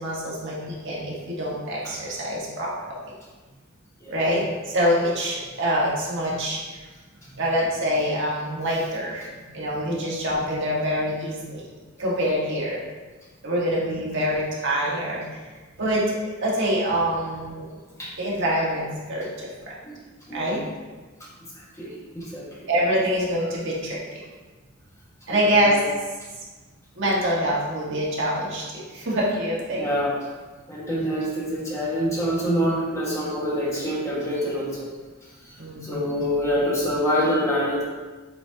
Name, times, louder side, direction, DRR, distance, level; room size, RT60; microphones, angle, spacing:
voice 1, 0.0-3.1 4.1-6.6 7.4-11.6 12.0-12.8 13.4-15.2 15.8-16.1 16.4-17.7 18.2-19.5 20.3-20.6 22.7-24.0 25.3-25.8 27.0-29.9 35.6-36.2, equal, 60° right, -5 dB, 1.6 m, -25 dB
voice 2, 21.8-22.5 25.3-25.8 29.8-30.1 30.7-34.9 35.8-37.8, equal, 15° left, -7 dB, 1.5 m, -26 dB
8.1 x 4.2 x 2.9 m, 1.3 s
head